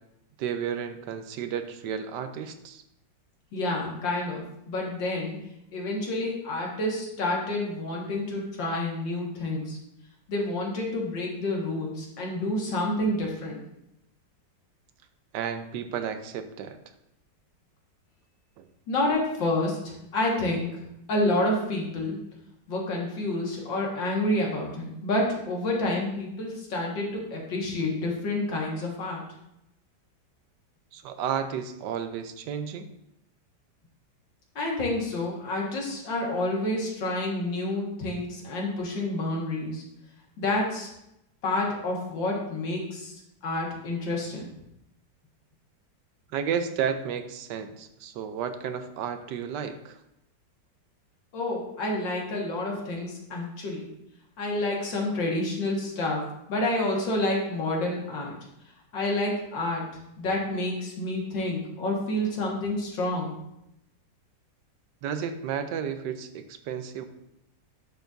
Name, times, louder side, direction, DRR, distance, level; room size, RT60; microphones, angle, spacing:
voice 1, 0.4-2.8 15.3-16.8 18.6-18.7 30.9-32.9 46.3-50.0 65.0-67.0, right 8 dB, 75° right, 9 dB, 1.2 m, -32 dB
voice 2, 3.5-5.4 5.7-9.8 10.3-13.6 18.9-20.7 21.1-22.2 22.7-29.2 34.6-39.8 40.4-40.9 41.4-43.1 43.4-44.5 51.3-53.9 54.4-56.2 56.5-58.4 58.9-59.9 60.2-63.3, left 1 dB, 80° left, -1 dB, 2.4 m, -29 dB
10.0 x 6.6 x 2.6 m, 0.82 s
omnidirectional pair, 2.0 m